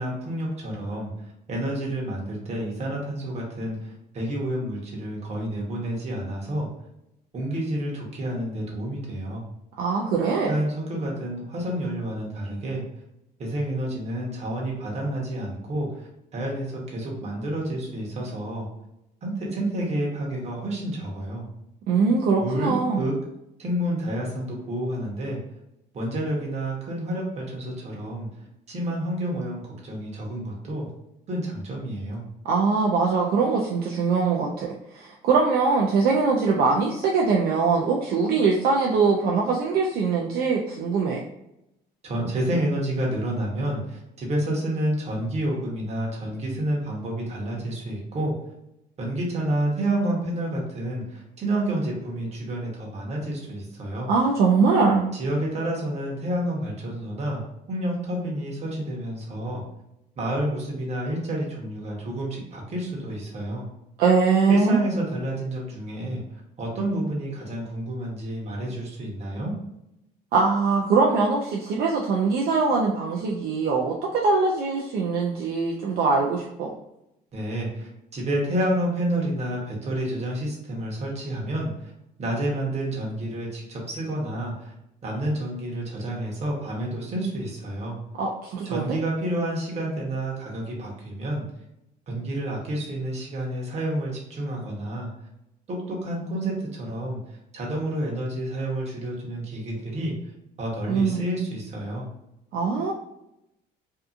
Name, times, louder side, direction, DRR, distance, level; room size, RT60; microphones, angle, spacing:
voice 1, 0.0-6.7 7.3-9.4 10.5-12.8 13.4-18.7 19.2-21.5 22.4-23.1 23.6-25.4 25.9-28.3 28.7-30.9 31.3-32.2 42.0-48.3 49.0-54.1 55.1-57.4 57.7-59.6 60.2-63.7 64.5-69.5 77.3-81.9 82.2-84.7 85.0-88.0 88.6-91.4 92.1-95.1 95.7-97.2 97.5-100.1 100.6-102.1, right 1 dB, 40° right, -2 dB, 1.0 m, -29 dB
voice 2, 9.8-10.6 21.9-23.1 32.4-34.7 34.9-41.2 54.1-55.1 64.0-64.8 70.3-76.7 88.2-89.0 100.9-101.2 102.5-102.9, right 4 dB, 65° right, -1 dB, 0.4 m, -22 dB
2.7 x 2.4 x 2.4 m, 0.84 s
cardioid pair, 110°, 17 cm